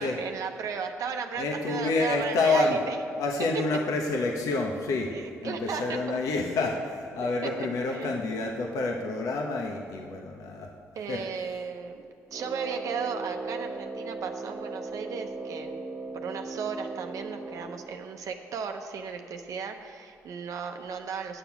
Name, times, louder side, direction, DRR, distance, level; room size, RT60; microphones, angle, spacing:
voice 1, 0.0-3.0 3.5-3.6 5.1-6.2 7.2-8.2 11.0-15.9 16.1-21.4, right 6 dB, 75° right, 5 dB, 0.7 m, -35 dB
voice 2, 1.4-2.8 3.2-5.1 5.4-10.7 11.1-11.2, left 3 dB, 80° left, 1 dB, 1.0 m, -28 dB
Brass instrument, 12.3-17.9, right 3 dB, 35° right, 1.4 m, -38 dB
8.9 x 7.1 x 5.9 m, 2.6 s
cardioid pair, 70°, 6 cm